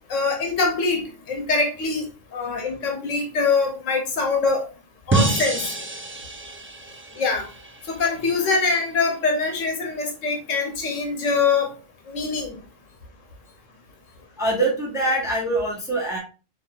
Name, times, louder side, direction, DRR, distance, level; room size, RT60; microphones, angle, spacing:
voice 1, 0.1-2.1 2.3-4.6 5.1-5.6 7.2-7.5 7.9-11.7 12.1-12.5, left 4 dB, 85° left, 3 dB, 1.4 m, -23 dB
sound 1, 5.1-8.2, right 3 dB, 20° right, 0.3 m, -27 dB
voice 2, 14.4-16.2, right 2 dB, 5° right, -2 dB, 1.2 m, -24 dB
5.3 x 3.4 x 2.4 m, 0.34 s
omnidirectional pair, 1.3 m